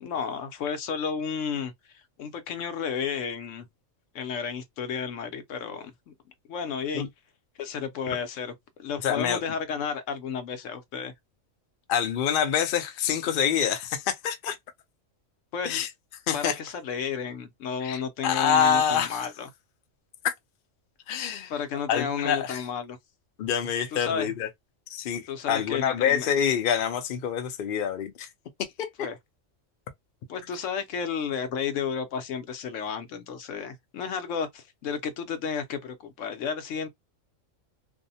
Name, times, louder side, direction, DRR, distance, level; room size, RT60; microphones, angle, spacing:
voice 1, 0.0-3.7 4.1-6.1 6.5-7.1 7.6-8.5 8.8-11.1 15.5-15.8 16.3-19.5 21.5-23.0 23.9-24.3 25.3-26.3 29.0-29.2 30.3-36.9, left 6 dB, 75° left, 1.0 m, -32 dB
voice 2, 9.0-9.4 11.9-14.6 15.6-15.9 16.3-16.6 17.8-19.2 20.2-20.3 21.1-21.5 21.9-22.6 23.4-24.5 24.9-28.3 28.8-29.1, left 8 dB, 55° left, 0.6 m, -26 dB
2.6 x 2.1 x 2.6 m
omnidirectional pair, 1.3 m